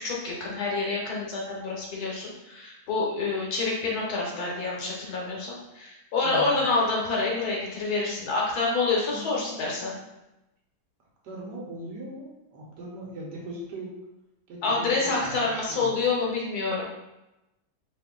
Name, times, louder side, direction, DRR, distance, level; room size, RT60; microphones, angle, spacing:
voice 1, 0.0-9.9 14.6-16.9, left 3 dB, 65° left, -3 dB, 1.3 m, -27 dB
voice 2, 6.2-6.7 9.1-10.0 11.2-14.0 14.5-16.0, right 1 dB, 80° right, -3 dB, 1.4 m, -40 dB
3.0 x 2.6 x 3.6 m, 0.95 s
omnidirectional pair, 1.8 m